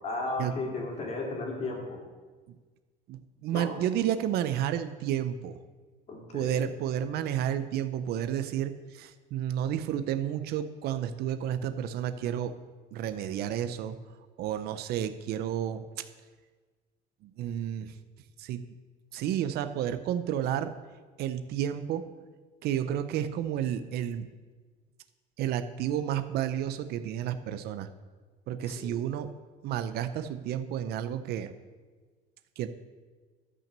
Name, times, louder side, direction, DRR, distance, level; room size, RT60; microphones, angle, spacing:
voice 1, 0.0-2.0 3.5-3.7 6.1-6.6 28.7-29.0, left 2 dB, 35° left, 0 dB, 2.6 m, -35 dB
voice 2, 3.1-5.6 6.3-12.5 12.9-14.0 14.4-15.8 17.2-17.9 18.4-18.6 19.1-20.7 21.2-22.0 22.6-24.3 25.4-27.9 28.5-29.3 29.6-31.5 32.6-32.7, right 10 dB, 65° right, 11 dB, 0.6 m, -31 dB
12.0 x 6.0 x 6.7 m, 1.4 s
cardioid pair, 150°, 18 cm